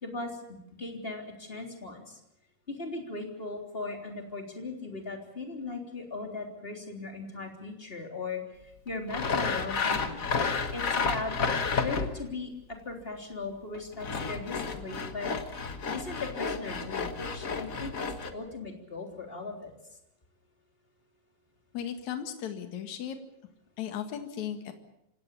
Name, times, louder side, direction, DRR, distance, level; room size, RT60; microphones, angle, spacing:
voice 1, 0.0-2.2 2.7-10.2 10.7-11.3 11.8-15.3 15.6-19.7, left 3 dB, 15° left, 3 dB, 3.5 m, -38 dB
Sawing, 9.1-12.3 13.7-18.3, left 5 dB, 85° left, 0.7 m, -31 dB
voice 2, 21.7-23.2 23.8-24.7, left 9 dB, 60° left, 6 dB, 3.1 m, -36 dB
27.0 x 17.5 x 7.1 m, 0.82 s
omnidirectional pair, 4.0 m